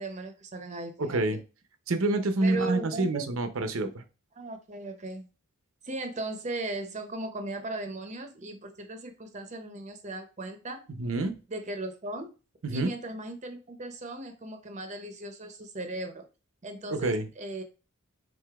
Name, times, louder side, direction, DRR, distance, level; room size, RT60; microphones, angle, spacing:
voice 1, 0.0-1.2 2.4-3.3 4.4-5.3 5.8-10.8 11.5-12.3 12.7-16.2 16.6-17.6, right 2 dB, 35° right, 0.6 m, -37 dB
voice 2, 1.0-1.4 1.9-4.0 11.0-11.3 12.6-12.9 16.9-17.3, right 2 dB, 80° right, 0.7 m, -27 dB
4.8 x 3.9 x 2.4 m
head